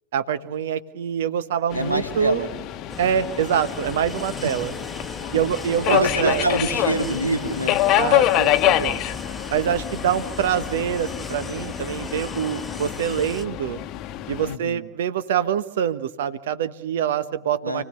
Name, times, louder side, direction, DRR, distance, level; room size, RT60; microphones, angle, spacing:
voice 1, 0.1-2.4 3.0-4.7 5.3-6.5 8.0-9.0 9.5-13.8 14.3-17.8, right 8 dB, 55° right, 13 dB, 1.2 m, -25 dB
Subway metro underground, 1.7-14.5, left 13 dB, 35° left, 1.1 m, -26 dB
voice 2, 1.7-2.5 5.8-7.8 14.5-14.9 17.6-17.8, right 1 dB, 85° right, 4 dB, 2.3 m, -26 dB
sound 1, 2.9-13.5, left 2 dB, 5° left, 1.4 m, -38 dB
29.0 x 18.5 x 6.9 m, 0.90 s
figure-of-eight pair, 90°, 0 cm